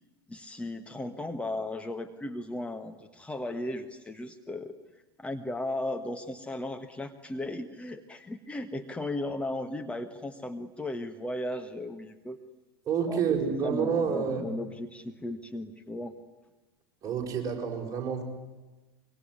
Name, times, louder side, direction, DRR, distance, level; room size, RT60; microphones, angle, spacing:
voice 1, 0.3-4.7 5.2-12.4 13.1-13.2 13.6-16.1, left 1 dB, 10° left, 6 dB, 1.6 m, -36 dB
voice 2, 12.9-14.4 17.0-18.2, right 6 dB, 25° right, 0 dB, 7.0 m, -28 dB
25.0 x 24.0 x 9.6 m, 1.1 s
figure-of-eight pair, 90°, 13 cm